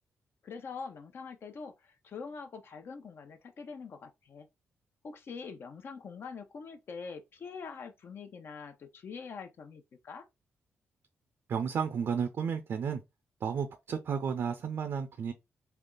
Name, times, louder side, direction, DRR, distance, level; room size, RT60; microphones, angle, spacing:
voice 1, 0.4-4.5 5.0-10.3, left 5 dB, 55° left, 0.8 m, -44 dB
voice 2, 11.5-13.0 13.4-15.3, right 6 dB, 65° right, 0.6 m, -32 dB
3.4 x 2.4 x 3.7 m
cardioid pair, 90°, 5 cm